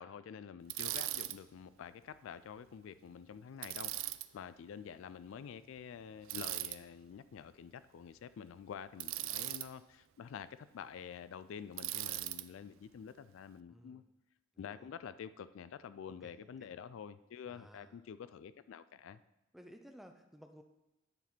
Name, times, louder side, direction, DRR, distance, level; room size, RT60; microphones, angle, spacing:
voice 1, 0.0-3.9 4.3-14.0 14.6-19.2, left 7 dB, 75° left, 15 dB, 0.3 m, -48 dB
Bicycle, 0.7-1.4 3.6-4.3 6.3-6.8 9.0-9.7 11.8-12.5, right 16 dB, 75° right, 0.3 m, -39 dB
voice 2, 13.7-14.1 14.7-14.9 16.2-16.3 16.6-16.7 17.5-18.0 19.5-20.6, equal, ahead, 5 dB, 0.5 m, -56 dB
9.9 x 4.1 x 4.4 m, 0.98 s
head